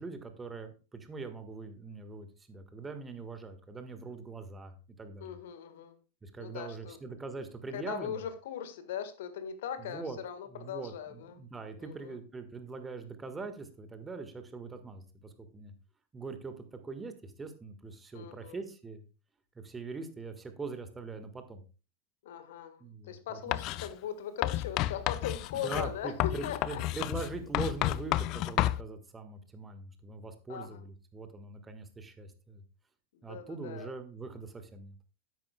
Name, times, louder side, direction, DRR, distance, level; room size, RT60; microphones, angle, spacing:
voice 1, 0.0-5.3 6.2-8.2 9.8-10.2 10.5-15.7 16.1-19.0 19.6-21.6 22.8-23.4 25.6-32.6 33.2-34.9, right 4 dB, 15° right, 7 dB, 1.6 m, -42 dB
voice 2, 5.2-5.9 6.4-7.0 7.7-11.4 11.8-12.1 18.1-18.6 22.2-26.8 30.5-30.8 33.1-33.9, left 8 dB, 55° left, 10 dB, 1.6 m, -40 dB
Writing, 23.5-23.9 24.4-28.8, left 15 dB, 40° left, 0.5 m, -31 dB
13.0 x 11.0 x 2.3 m, 0.33 s
figure-of-eight pair, 90°, 0 cm